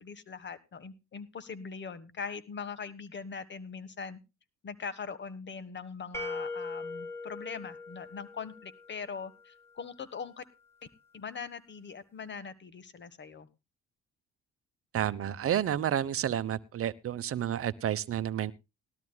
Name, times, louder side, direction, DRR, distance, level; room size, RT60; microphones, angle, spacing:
voice 1, 0.0-4.2 4.6-10.4 11.1-13.5, left 5 dB, 40° left, 15 dB, 1.4 m, -41 dB
sound 1, 6.1-9.0, left 2 dB, 10° left, 3.5 m, -40 dB
voice 2, 14.9-18.5, right 10 dB, 50° right, 14 dB, 0.9 m, -30 dB
19.5 x 13.0 x 2.2 m, 0.26 s
cardioid pair, 90°, 30 cm